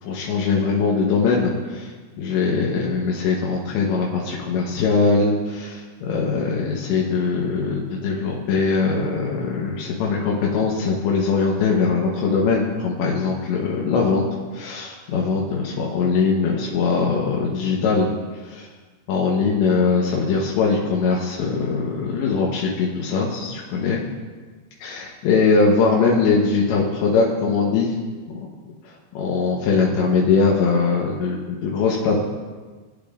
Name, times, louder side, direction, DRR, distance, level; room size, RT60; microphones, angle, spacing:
voice 1, 0.0-1.9 2.2-14.2 14.5-18.1 18.4-18.7 19.1-24.0 24.8-27.9 29.1-32.2, left 4 dB, 85° left, -2 dB, 3.3 m, -21 dB
20.0 x 8.6 x 2.5 m, 1.4 s
omnidirectional pair, 5.0 m